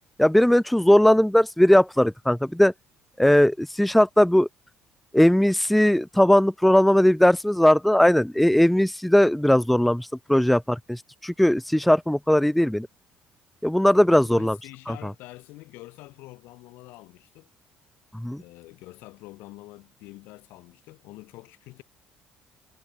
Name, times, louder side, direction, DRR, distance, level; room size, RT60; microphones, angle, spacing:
voice 1, 0.2-2.7 3.2-4.5 5.1-12.9 13.6-14.6 14.9-15.1 18.1-18.4, left 1 dB, ahead, 0.4 m, -19 dB
voice 2, 14.1-17.5 18.4-21.8, left 20 dB, 90° left, 7.2 m, -46 dB
cardioid pair, 125°, 3 cm